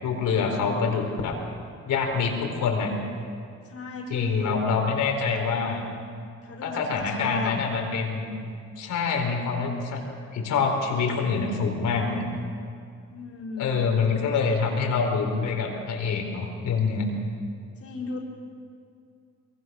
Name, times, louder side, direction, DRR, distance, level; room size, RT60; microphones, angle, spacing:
voice 1, 0.0-1.4 1.8-2.9 4.1-5.8 6.6-8.3 8.8-10.0 10.3-12.2 13.6-17.1, left 5 dB, 80° left, 2 dB, 4.5 m, -26 dB
voice 2, 3.6-4.6 6.4-7.7 13.1-13.9 17.8-18.2, left 4 dB, 50° left, -2 dB, 4.4 m, -34 dB
24.0 x 23.0 x 6.4 m, 2.3 s
cardioid pair, 90°, 30 cm